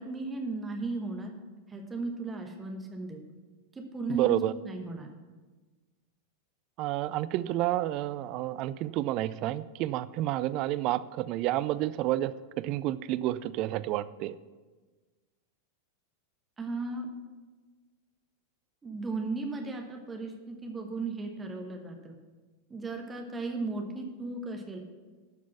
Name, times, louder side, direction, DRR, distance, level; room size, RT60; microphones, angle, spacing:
voice 1, 0.0-1.3 1.7-3.2 3.7-5.1 16.6-17.1 18.8-22.1 22.7-24.8, right 3 dB, 15° right, 3 dB, 1.1 m, -36 dB
voice 2, 4.1-4.5 6.8-14.4, right 14 dB, 40° right, 16 dB, 0.4 m, -30 dB
12.5 x 5.1 x 5.8 m, 1.3 s
figure-of-eight pair, 90°, 0 cm